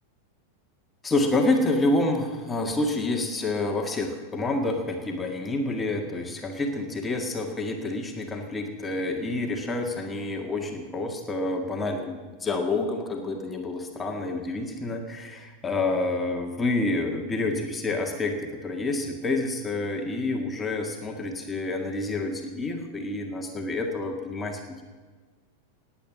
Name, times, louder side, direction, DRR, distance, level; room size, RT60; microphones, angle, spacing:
voice 1, 1.0-24.8, left 2 dB, 15° left, 2 dB, 1.9 m, -28 dB
19.5 x 8.7 x 7.4 m, 1.4 s
figure-of-eight pair, 90°, 0 cm